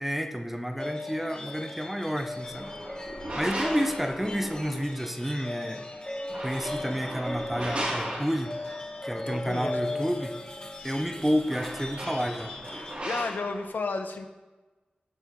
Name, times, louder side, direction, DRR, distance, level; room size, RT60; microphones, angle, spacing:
voice 1, 0.0-2.7 3.4-5.8 6.4-8.5 9.0-10.3 10.8-12.5, equal, 5° right, 5 dB, 1.0 m, -30 dB
sound 1, 0.8-12.9, left 2 dB, 30° left, 3.0 m, -38 dB
sound 2, 2.4-5.0 6.1-8.8 10.7-10.8 11.1-13.6, right 1 dB, 45° right, 3.5 m, -36 dB
voice 2, 9.2-10.1 12.7-14.3, left 3 dB, 90° left, 5 dB, 1.1 m, -33 dB
18.0 x 6.2 x 4.7 m, 1.2 s
wide cardioid pair, 95°, 3 cm